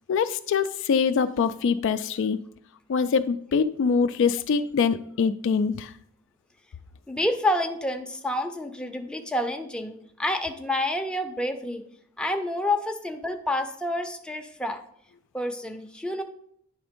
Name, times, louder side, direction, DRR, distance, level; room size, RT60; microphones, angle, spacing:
voice 1, 0.1-2.4 2.9-5.9, left 5 dB, 60° left, 11 dB, 0.3 m, -24 dB
voice 2, 7.1-11.8 12.2-14.8 15.3-16.2, left 1 dB, 5° left, 4 dB, 0.5 m, -28 dB
9.6 x 3.5 x 5.1 m, 0.69 s
head